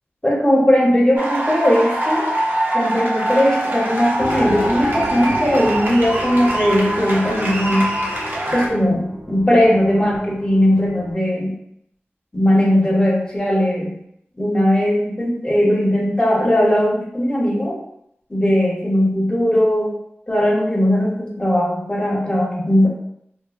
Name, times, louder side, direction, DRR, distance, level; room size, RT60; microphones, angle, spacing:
voice 1, 0.2-2.3 2.7-7.9 8.5-11.5 12.3-13.9 14.4-17.8 18.3-19.9 20.3-22.9, equal, 20° left, -4 dB, 0.8 m, -18 dB
sound 1, 1.2-8.7, right 1 dB, 50° right, 0.7 m, -23 dB
sound 2, 4.2-11.1, equal, 15° right, 0.8 m, -32 dB
2.9 x 2.1 x 2.4 m, 0.75 s
wide cardioid pair, 60°, 4 cm